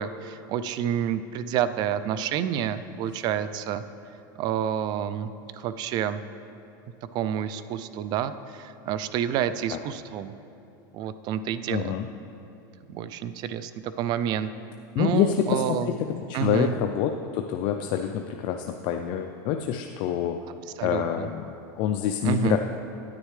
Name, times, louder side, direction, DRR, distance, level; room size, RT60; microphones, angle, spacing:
voice 1, 0.0-3.8 4.4-5.3 5.6-6.2 7.1-10.3 10.9-12.0 12.9-14.5 15.0-15.9 16.3-16.7 20.8-21.3 22.2-22.6, right 9 dB, 40° right, 13 dB, 0.4 m, -29 dB
voice 2, 11.7-12.1 14.9-15.9 16.3-20.4 20.8-21.4 21.8-22.6, left 9 dB, 45° left, 5 dB, 0.4 m, -26 dB
9.7 x 9.5 x 3.3 m, 2.7 s
supercardioid pair, 130°, 11 cm